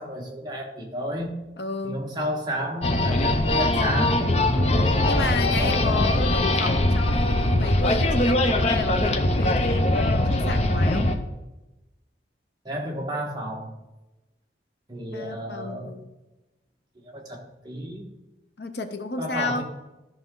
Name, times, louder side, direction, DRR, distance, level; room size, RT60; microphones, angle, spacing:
voice 1, 0.0-1.3 1.8-6.0 12.6-13.7 14.9-16.0 17.0-18.1 19.2-19.6, equal, 25° right, -1 dB, 1.6 m, -32 dB
voice 2, 1.6-2.0 4.5-11.1 15.1-16.0 18.6-19.6, left 2 dB, 70° left, 8 dB, 0.9 m, -31 dB
sound 1, 2.8-11.2, left 1 dB, 35° left, 0.8 m, -22 dB
13.5 x 6.0 x 3.9 m, 1.0 s
head